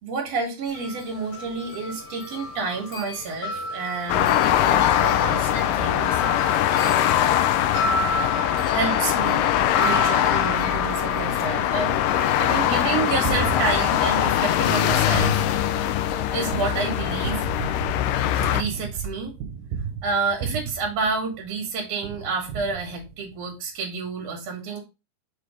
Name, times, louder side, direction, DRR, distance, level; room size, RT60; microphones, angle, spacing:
voice 1, 0.0-6.2 8.7-9.5 9.8-12.0 12.4-15.4 16.3-17.4 18.5-19.6 20.0-24.8, right 4 dB, 50° right, 0 dB, 2.7 m, -29 dB
Wind chime, 0.7-17.2, left 2 dB, 65° left, 1.9 m, -33 dB
sound 1, 4.1-18.6, left 12 dB, 80° left, 2.2 m, -22 dB
Gunshot gunfire, 11.9-21.6 22.0-23.4, right 7 dB, 85° right, 2.3 m, -35 dB
6.4 x 3.3 x 5.0 m, 0.27 s
omnidirectional pair, 3.9 m